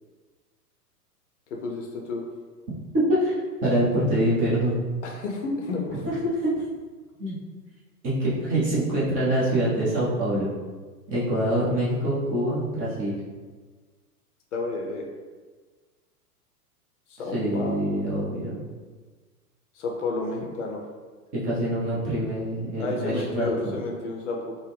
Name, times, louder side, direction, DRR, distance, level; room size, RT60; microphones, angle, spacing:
voice 1, 1.5-2.2 5.0-6.0 14.5-15.0 17.1-18.0 19.7-20.8 22.8-24.6, left 3 dB, 50° left, 0 dB, 0.6 m, -31 dB
voice 2, 3.6-4.8 6.0-6.5 7.2-7.4 8.0-10.5 11.1-13.1 17.3-18.6 21.3-23.7, right 1 dB, 20° right, -8 dB, 0.6 m, -25 dB
3.7 x 2.0 x 3.3 m, 1.4 s
figure-of-eight pair, 100°, 47 cm